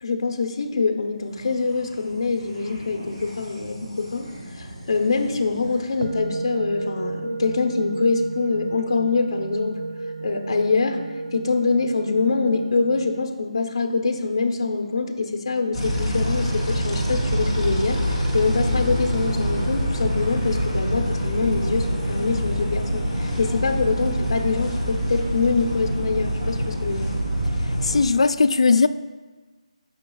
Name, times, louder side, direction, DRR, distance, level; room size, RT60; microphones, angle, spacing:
voice 1, 0.0-4.3 4.5-9.8 10.2-11.1 11.3-27.1, left 4 dB, 35° left, 0.7 m, -24 dB
sound 1, 1.2-7.9, equal, 35° right, 2.4 m, -43 dB
sound 2, 6.0-13.2, right 3 dB, 65° right, 0.5 m, -32 dB
sound 3, 15.7-28.0, equal, 15° right, 2.0 m, -25 dB
voice 2, 27.6-28.9, left 4 dB, 55° left, 0.4 m, -19 dB
15.0 x 5.8 x 2.3 m
hypercardioid pair, 175°, 4 cm